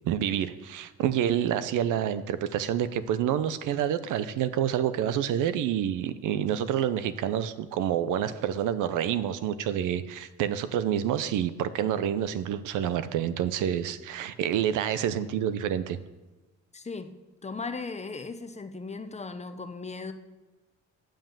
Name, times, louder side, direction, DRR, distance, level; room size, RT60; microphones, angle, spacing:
voice 1, 0.0-16.0, right 10 dB, 85° right, 0.6 m, -28 dB
voice 2, 16.7-20.1, left 4 dB, 20° left, 0.7 m, -37 dB
7.6 x 7.5 x 7.3 m
cardioid pair, 90°, 30 cm